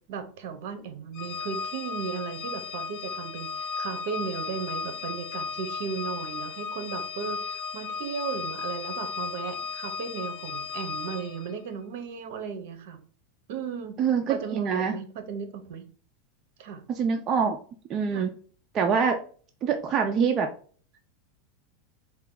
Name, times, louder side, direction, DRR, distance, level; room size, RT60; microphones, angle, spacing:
voice 1, 0.1-13.0 13.5-14.0 14.3-15.8 16.6-16.8 18.1-18.3, right 6 dB, 60° right, 8 dB, 0.7 m, -36 dB
Organ, 1.1-11.6, left 5 dB, 40° left, 0.6 m, -35 dB
voice 2, 14.0-14.9 16.9-17.6 17.9-18.4 18.7-19.2 19.6-20.5, right 6 dB, 25° right, 4 dB, 0.3 m, -25 dB
4.3 x 2.2 x 3.7 m, 0.43 s
supercardioid pair, 160°, 0 cm